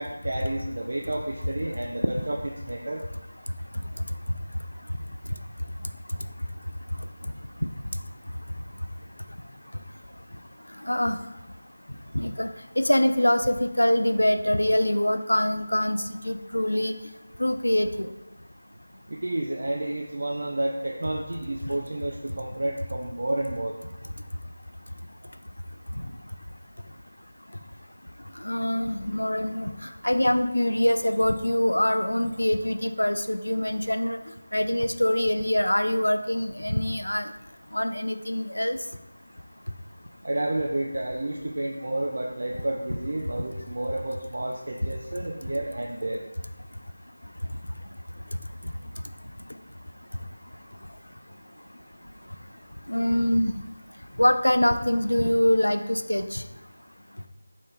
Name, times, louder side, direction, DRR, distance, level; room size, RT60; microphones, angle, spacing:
voice 1, 0.0-3.0 19.1-23.8 40.2-46.2, right 1 dB, 55° right, 0 dB, 0.5 m, -30 dB
voice 2, 10.9-11.2 12.1-12.5 12.8-16.9 17.4-18.1 28.4-29.7 30.0-34.2 34.5-37.3 37.7-38.8 52.9-53.6 54.2-56.4, left 1 dB, 80° left, 8 dB, 0.4 m, -24 dB
4.2 x 3.0 x 4.0 m, 0.99 s
figure-of-eight pair, 165°, 0 cm